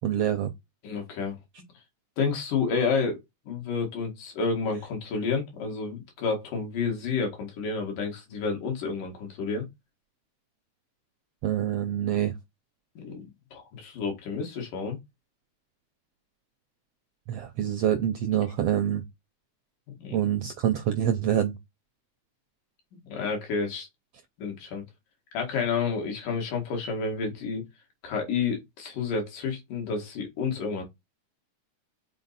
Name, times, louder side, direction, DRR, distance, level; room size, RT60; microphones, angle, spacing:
voice 1, 0.0-0.5 11.4-12.3 17.3-19.0 20.1-21.6, right 10 dB, 80° right, 1.4 m, -26 dB
voice 2, 0.8-1.4 2.2-3.2 3.5-9.7 13.0-15.0 20.0-20.2 23.1-23.9 24.4-24.8 25.3-27.6 28.0-30.8, left 5 dB, 90° left, 3.6 m, -30 dB
6.7 x 4.2 x 4.1 m
omnidirectional pair, 3.6 m